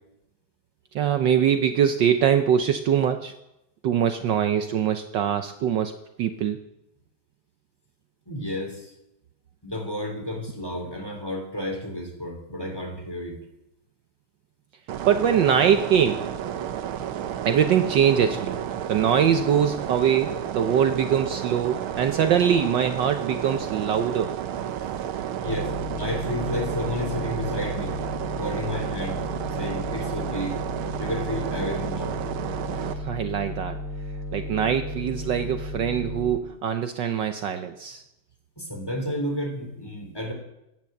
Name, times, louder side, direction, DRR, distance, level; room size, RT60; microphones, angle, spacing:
voice 1, 0.9-3.3 3.8-5.9 6.2-6.6 15.1-16.3 17.4-18.6 18.9-24.4 32.9-33.8 34.3-38.0, right 8 dB, 70° right, 8 dB, 1.3 m, -23 dB
voice 2, 8.3-8.9 9.6-13.4 25.4-28.0 28.4-29.2 29.5-30.6 31.0-32.1 38.6-40.3, left 1 dB, 10° left, 3 dB, 3.2 m, -31 dB
sound 1, 14.9-32.9, right 10 dB, 85° right, 1.8 m, -32 dB
sound 2, 25.5-36.4, left 1 dB, 80° left, 3.4 m, -34 dB
15.0 x 11.0 x 7.7 m, 0.89 s
omnidirectional pair, 2.3 m